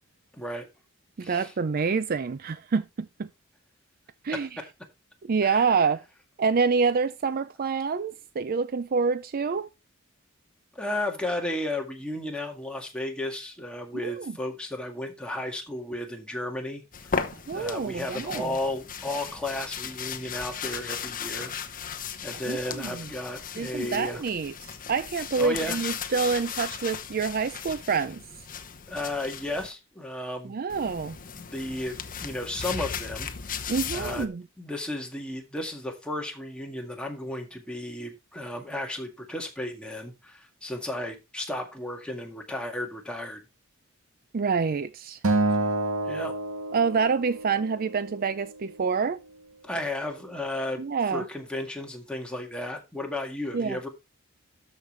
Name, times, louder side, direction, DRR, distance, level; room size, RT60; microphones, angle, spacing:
voice 1, 0.3-0.7 1.2-1.5 4.3-4.7 5.4-5.7 10.7-16.8 17.1-17.2 17.5-21.5 22.2-24.2 25.4-25.8 28.9-30.5 31.3-33.3 33.6-34.3 34.6-43.4 46.1-46.3 49.6-50.8 51.1-53.9, left 1 dB, 5° left, 1.9 m, -34 dB
voice 2, 1.2-3.3 4.2-4.5 5.2-6.0 6.4-9.7 13.9-14.4 17.5-18.5 22.5-23.1 23.6-28.2 30.4-31.2 33.7-34.4 44.3-45.2 46.7-49.2 50.8-51.2 53.5-53.8, right 5 dB, 45° right, 0.4 m, -27 dB
sound 1, 16.9-29.7 30.7-34.3, left 6 dB, 40° left, 0.9 m, -36 dB
Acoustic guitar, 45.2-47.6, right 2 dB, 85° right, 1.7 m, -27 dB
13.0 x 5.2 x 3.2 m
head